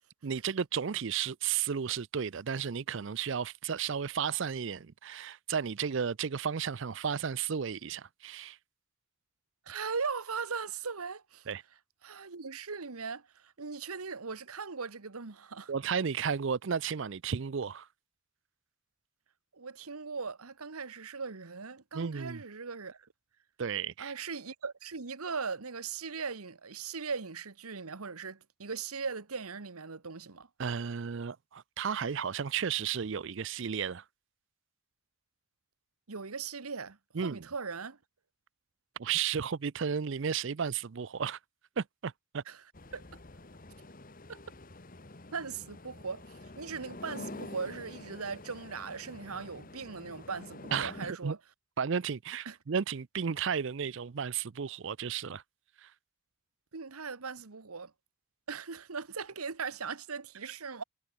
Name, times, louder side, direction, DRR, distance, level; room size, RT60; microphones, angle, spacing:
voice 1, 0.2-8.6 11.5-11.6 15.7-17.9 21.9-22.4 23.6-24.1 30.6-34.0 37.1-37.5 39.0-41.4 41.8-42.4 50.7-51.4 51.8-55.4 55.8-55.9, right 7 dB, 55° right, 0.5 m, -33 dB
voice 2, 9.7-11.5 12.0-15.7 19.5-23.1 24.0-30.5 36.1-38.0 42.5-42.6 42.9-43.0 44.3-44.4 45.3-51.4 52.4-52.6 56.7-57.9 58.5-60.8, right 5 dB, 90° right, 1.3 m, -39 dB
sound 1, 42.7-51.1, left 2 dB, 40° left, 1.5 m, -47 dB
head